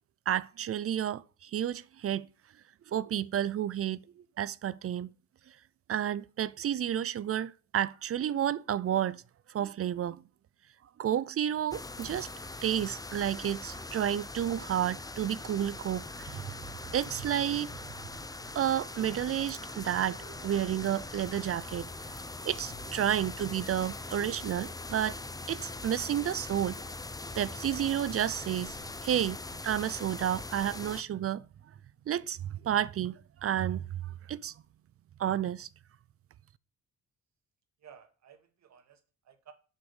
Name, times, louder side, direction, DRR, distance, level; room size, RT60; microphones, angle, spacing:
voice 1, 0.3-2.3 2.9-4.0 4.4-5.1 5.9-9.2 9.5-10.2 11.0-12.3 12.6-16.6 16.9-17.9 18.5-22.1 22.5-25.2 25.5-26.8 27.4-28.8 29.0-29.4 29.6-31.4 32.1-34.5 35.2-35.7, right 10 dB, 50° right, 0.6 m, -31 dB
sound 1, 11.7-31.0, left 2 dB, 10° left, 0.8 m, -42 dB
voice 2, 37.8-39.5, right 8 dB, 65° right, 2.0 m, -56 dB
8.0 x 6.6 x 7.2 m
cardioid pair, 90°, 30 cm